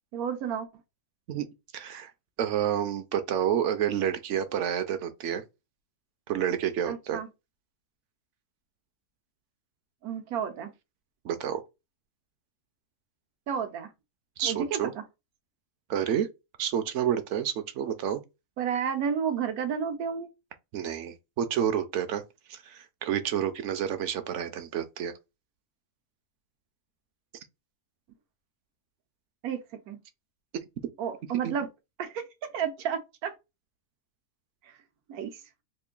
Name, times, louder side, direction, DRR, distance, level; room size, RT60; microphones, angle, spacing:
voice 1, 0.1-0.7 6.9-7.3 10.0-10.7 13.5-13.9 14.4-14.9 18.6-20.3 29.4-29.6 29.9-30.0 31.0-31.7 32.0-32.2 32.5-33.3 34.6-34.7 35.1-35.4, right 7 dB, 85° right, 1.2 m, -31 dB
voice 2, 1.7-2.1 2.4-5.4 6.3-7.2 11.2-11.6 14.4-14.9 15.9-16.3 16.6-18.2 20.7-22.2 22.5-25.1 31.4-31.5, right 9 dB, 65° right, 0.8 m, -29 dB
3.0 x 2.5 x 3.7 m
omnidirectional pair, 1.5 m